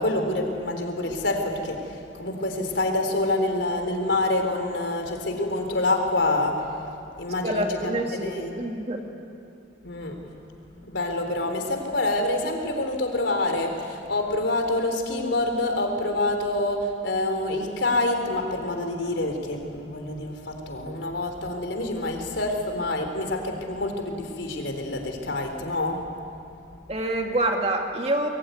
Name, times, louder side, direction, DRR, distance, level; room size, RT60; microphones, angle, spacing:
voice 1, 0.0-6.7 7.2-7.9 8.2-8.6 9.8-10.2 10.9-26.1, left 2 dB, 75° left, 4 dB, 3.9 m, -27 dB
voice 2, 7.4-9.0 26.9-28.3, right 1 dB, 30° right, 2 dB, 2.4 m, -26 dB
26.0 x 22.0 x 9.6 m, 2.7 s
head